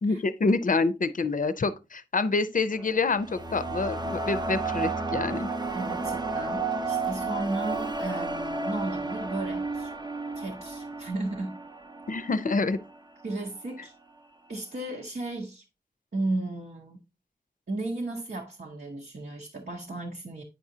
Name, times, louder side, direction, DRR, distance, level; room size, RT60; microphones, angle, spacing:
voice 1, 0.0-5.5 12.1-12.8, left 3 dB, 55° left, 0.5 m, -27 dB
sound 1, 2.7-12.9, right 3 dB, 25° right, 0.7 m, -32 dB
voice 2, 5.7-9.9 10.3-11.6 13.2-13.9 14.5-15.6 16.1-17.0 17.7-20.4, right 2 dB, 70° right, 0.9 m, -34 dB
8.8 x 4.9 x 2.7 m
wide cardioid pair, 60°, 17 cm